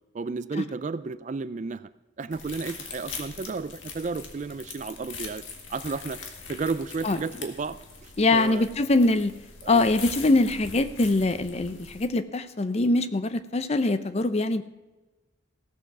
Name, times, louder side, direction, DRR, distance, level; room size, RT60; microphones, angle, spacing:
voice 1, 0.1-1.9 2.2-5.4 5.7-6.2 6.5-8.6 9.6-9.9, right 4 dB, 40° right, 14 dB, 0.4 m, -33 dB
sound 1, 2.3-12.1, left 5 dB, 80° left, 1.8 m, -42 dB
voice 2, 8.2-9.3 9.7-14.6, left 2 dB, 35° left, 12 dB, 0.5 m, -23 dB
16.0 x 6.9 x 6.0 m, 1.1 s
head